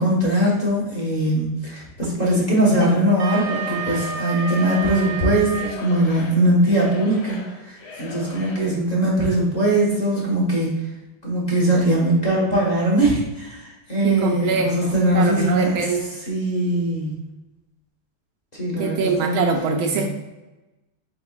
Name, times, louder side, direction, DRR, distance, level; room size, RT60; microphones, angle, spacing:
voice 1, 0.0-10.8 11.2-15.8 16.3-17.2 18.5-20.1, right 1 dB, 30° left, -5 dB, 0.9 m, -21 dB
voice 2, 2.0-2.4 14.0-16.1 18.8-20.1, right 4 dB, 85° right, 1 dB, 1.4 m, -24 dB
Wind instrument woodwind instrument, 2.7-5.8, right 6 dB, 70° right, 1.1 m, -30 dB
Singing / Crowd, 3.1-8.8, left 4 dB, 65° left, 1.1 m, -38 dB
4.5 x 4.4 x 2.3 m, 1.1 s
omnidirectional pair, 2.2 m